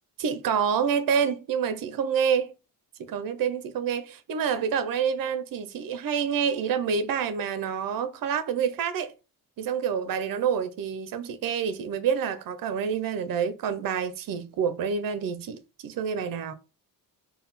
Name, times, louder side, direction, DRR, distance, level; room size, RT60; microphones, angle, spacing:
voice 1, 0.2-2.5 3.0-9.1 9.6-16.5, right 7 dB, 60° right, 0.6 m, -27 dB
4.0 x 2.2 x 4.0 m
cardioid pair, 90°, 38 cm